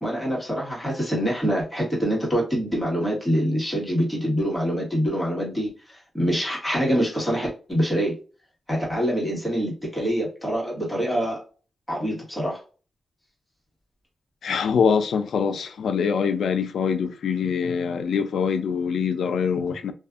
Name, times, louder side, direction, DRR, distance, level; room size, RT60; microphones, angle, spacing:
voice 1, 0.0-8.1 8.7-11.4 11.9-12.6, equal, 5° left, 1.4 m, -25 dB
voice 2, 14.4-19.9, left 6 dB, 85° left, 0.4 m, -24 dB
2.6 x 2.3 x 2.4 m
wide cardioid pair, 115°, 0 cm